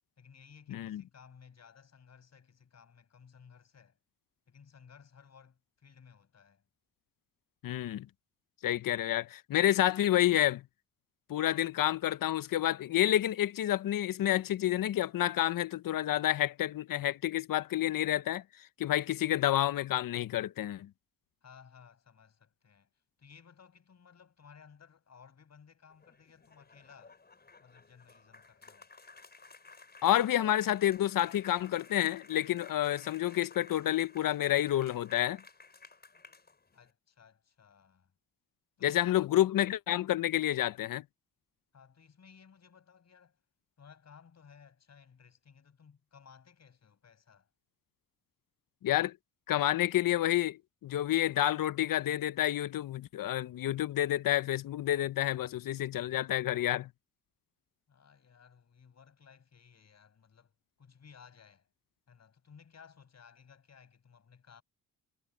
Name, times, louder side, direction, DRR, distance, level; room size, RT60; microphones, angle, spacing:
voice 1, 0.2-4.0 4.5-6.6 21.4-22.9 23.2-27.2 27.6-28.9 36.7-38.1 38.8-39.3 41.7-43.4 43.8-47.5 57.9-61.7 62.1-64.6, left 6 dB, 50° left, 5.5 m, -58 dB
voice 2, 0.7-1.0 7.6-8.1 8.6-10.6 11.3-20.9 30.0-35.4 38.8-41.0 48.8-49.2 49.5-56.9, left 13 dB, 70° left, 0.6 m, -29 dB
sound 1, 25.9-36.9, left 4 dB, 30° left, 5.0 m, -55 dB
wide cardioid pair, 135°, 34 cm